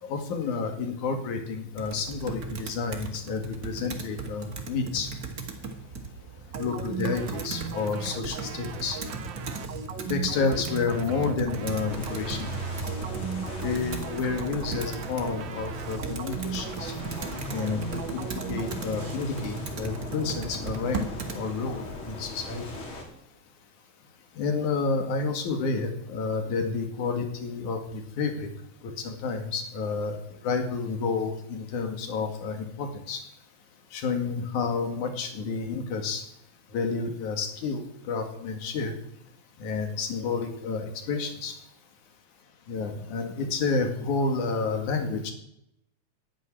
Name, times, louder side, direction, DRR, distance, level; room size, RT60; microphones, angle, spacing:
voice 1, 0.0-5.1 6.6-9.0 10.1-12.5 13.6-16.9 17.5-22.6 24.4-28.5 28.8-30.2 30.4-33.2 33.9-36.2 36.7-37.8 38.1-38.9 39.6-41.5 42.7-45.3, left 4 dB, 80° left, 5 dB, 3.5 m, -30 dB
Computer keyboard, 1.7-21.4, right 4 dB, 35° right, 1.8 m, -37 dB
sound 1, 6.5-19.2, right 6 dB, 75° right, 1.0 m, -38 dB
sound 2, 11.9-23.0, left 2 dB, 45° left, 3.4 m, -40 dB
11.5 x 9.3 x 9.9 m, 0.79 s
omnidirectional pair, 3.5 m